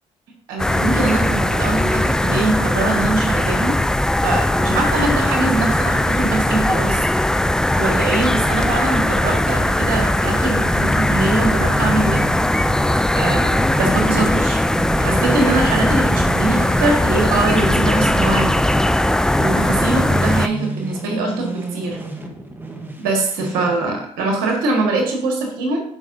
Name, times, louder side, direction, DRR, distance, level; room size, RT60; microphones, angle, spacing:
voice 1, 0.5-3.8 4.2-7.0 7.7-12.2 13.1-14.6 15.0-18.5 19.4-22.0 23.0-25.8, right 2 dB, 85° right, 1 dB, 1.7 m, -22 dB
sound 1, 0.6-20.5, left 1 dB, 5° left, 0.4 m, -19 dB
sound 2, 10.7-23.8, right 2 dB, 15° right, 1.3 m, -30 dB
11.5 x 4.7 x 2.7 m, 0.68 s
supercardioid pair, 65°, 14 cm